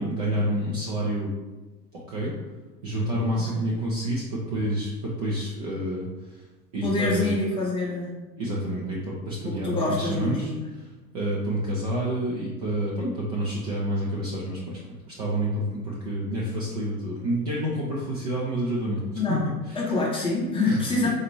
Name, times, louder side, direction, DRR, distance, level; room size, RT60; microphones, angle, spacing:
voice 1, 0.0-1.3 1.9-2.3 2.8-6.4 6.7-7.3 8.4-19.0 19.3-19.4 19.7-19.8 20.6-21.1, right 1 dB, 25° right, -5 dB, 0.4 m, -29 dB
voice 2, 6.8-8.2 9.4-10.7 19.1-19.4 19.7-21.1, left 2 dB, 10° left, -4 dB, 0.7 m, -26 dB
4.0 x 2.4 x 3.1 m, 1.2 s
figure-of-eight pair, 90°, 50 cm